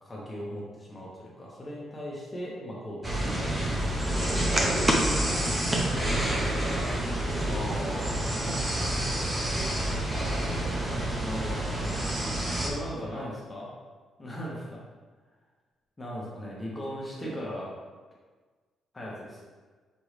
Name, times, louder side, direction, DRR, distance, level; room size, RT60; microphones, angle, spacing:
voice 1, 0.0-3.9 7.5-8.1 11.1-12.0 12.6-13.7 14.2-14.8 16.0-17.7 18.9-19.4, equal, 15° left, -5 dB, 0.8 m, -38 dB
sound 1, 3.0-12.7, right 1 dB, 15° right, 0.6 m, -28 dB
voice 2, 5.8-7.0 7.3-11.0 13.0-13.3 17.2-17.4, right 1 dB, 70° right, -5 dB, 1.4 m, -43 dB
5.2 x 3.0 x 3.2 m, 1.4 s
cardioid pair, 150°, 0 cm